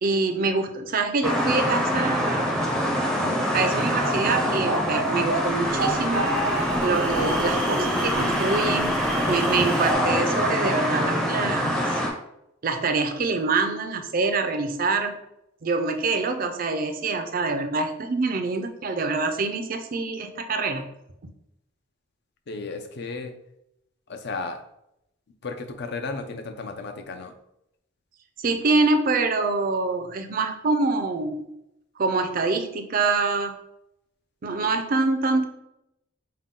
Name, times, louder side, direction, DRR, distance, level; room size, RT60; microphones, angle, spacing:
voice 1, 0.0-2.6 3.5-6.3 6.8-12.0 12.6-15.1 15.6-20.9 21.2-21.3 28.4-31.5 32.0-33.5 34.4-35.5, right 3 dB, 45° right, 6 dB, 0.5 m, -25 dB
sound 1, 1.2-12.1, equal, 5° left, 0.6 m, -25 dB
sound 2, 3.5-9.9, right 2 dB, 80° right, 0.9 m, -31 dB
voice 2, 22.5-23.3 24.1-24.6 25.4-27.3, left 3 dB, 55° left, 6 dB, 0.5 m, -34 dB
5.5 x 2.2 x 3.6 m, 0.83 s
head